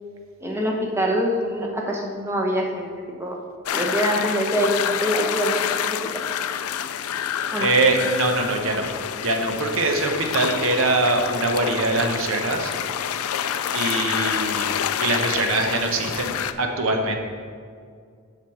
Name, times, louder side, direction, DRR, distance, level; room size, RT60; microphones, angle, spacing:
voice 1, 0.4-3.4 3.7-5.8 7.5-7.7, equal, 10° right, 0 dB, 0.9 m, -24 dB
sound 1, 3.7-16.5, left 9 dB, 80° left, 0.4 m, -28 dB
voice 2, 7.6-8.9 9.2-12.7 13.7-14.7 15.0-17.2, right 2 dB, 65° right, 4 dB, 0.9 m, -23 dB
7.4 x 6.0 x 4.8 m, 2.1 s
head